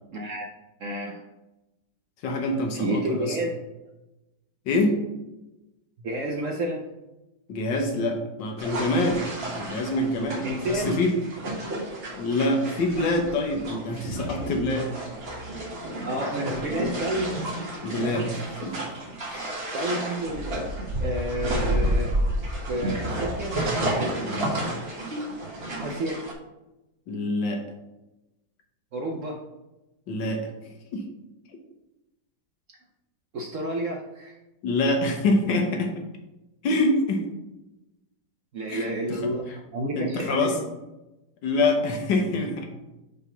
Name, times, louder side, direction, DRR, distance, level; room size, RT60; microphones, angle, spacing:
voice 1, 0.1-0.5 0.8-1.2 2.7-3.6 6.0-6.8 10.4-11.0 16.0-17.3 19.7-20.5 21.0-22.1 22.7-23.6 25.8-26.2 28.9-29.4 33.3-34.4 38.5-40.6, right 1 dB, 65° right, 1 dB, 0.8 m, -30 dB
voice 2, 2.2-3.4 4.7-5.0 7.5-9.2 9.5-11.1 12.2-14.9 17.8-19.0 19.3-19.5 24.2-24.5 27.1-27.6 30.1-30.4 30.9-31.0 34.6-35.9 36.6-37.2 38.7-39.2 40.0-40.6 41.4-42.6, left 2 dB, 80° left, 3 dB, 1.6 m, -25 dB
sound 1, 8.6-26.3, right 1 dB, 40° right, 1.2 m, -31 dB
5.5 x 3.6 x 5.7 m, 0.99 s
omnidirectional pair, 2.0 m